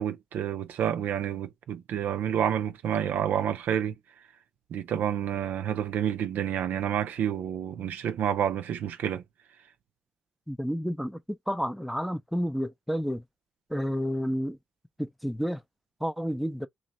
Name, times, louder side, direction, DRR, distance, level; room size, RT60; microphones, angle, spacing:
voice 1, 0.0-3.9 4.7-9.2, right 9 dB, 65° right, 0.4 m, -29 dB
voice 2, 10.5-13.2 13.7-14.6 15.0-15.6 16.0-16.7, equal, ahead, 0.5 m, -30 dB
2.9 x 2.0 x 4.0 m
hypercardioid pair, 45°, 3 cm